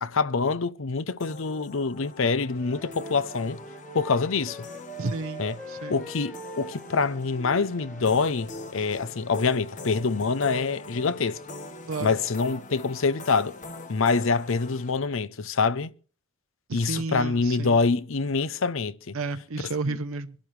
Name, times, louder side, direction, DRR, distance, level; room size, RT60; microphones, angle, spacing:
voice 1, 0.0-3.6 3.9-4.6 5.4-5.5 5.9-11.4 12.0-13.6 13.9-15.9 16.7-19.2 19.9-20.0, left 4 dB, 65° left, 0.7 m, -25 dB
sound 1, 1.2-14.9, left 2 dB, 35° left, 1.3 m, -43 dB
Wind instrument woodwind instrument, 2.5-8.1, right 2 dB, 5° left, 1.7 m, -43 dB
voice 2, 5.0-6.0 11.9-12.2 16.7-17.8 19.1-20.4, right 3 dB, 80° right, 0.8 m, -32 dB
24.0 x 12.0 x 3.3 m
head